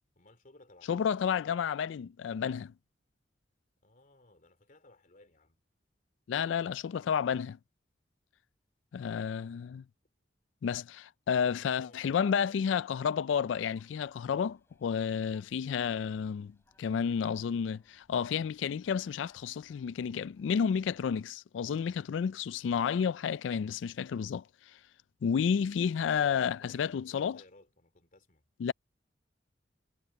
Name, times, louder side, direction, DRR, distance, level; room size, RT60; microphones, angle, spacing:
voice 1, 0.2-1.0 3.8-5.6 11.3-12.6 26.0-28.4, left 2 dB, 45° left, 3.0 m, -60 dB
voice 2, 0.9-2.7 6.3-7.6 8.9-9.8 10.6-24.4 25.2-27.4 28.6-28.7, left 7 dB, 80° left, 0.3 m, -31 dB
sound 1, 13.3-21.1, left 1 dB, 15° left, 5.9 m, -71 dB
head